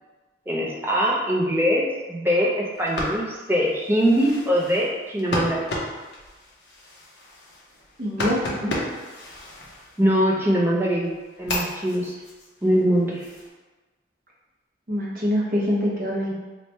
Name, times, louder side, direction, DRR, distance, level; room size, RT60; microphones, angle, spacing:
voice 1, 0.5-5.6 10.0-11.1 11.4-12.2 12.6-13.3, equal, 10° right, -4 dB, 0.5 m, -22 dB
sound 1, 2.7-10.4 10.8-13.5, left 1 dB, 70° left, 0.7 m, -34 dB
voice 2, 8.0-8.7 14.9-16.3, equal, 50° right, -5 dB, 0.9 m, -24 dB
3.1 x 2.2 x 4.1 m, 1.3 s
head